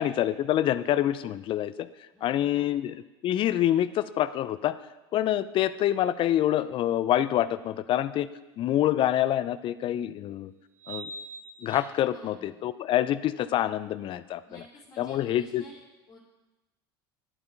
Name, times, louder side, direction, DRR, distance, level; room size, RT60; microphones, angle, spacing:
voice 1, 0.0-1.9 2.2-3.0 3.2-4.8 5.1-8.3 8.6-10.5 10.9-11.1 11.6-14.6 15.0-15.6, left 12 dB, 45° left, 15 dB, 0.5 m, -26 dB
voice 2, 2.1-2.7 12.0-12.5 14.5-15.8 16.1-16.2, equal, 25° left, -4 dB, 2.6 m, -51 dB
sound 1, 9.1-9.2 10.8-12.2, right 3 dB, 15° right, 1.0 m, -42 dB
11.0 x 8.2 x 4.5 m, 1.1 s
hypercardioid pair, 90°, 12 cm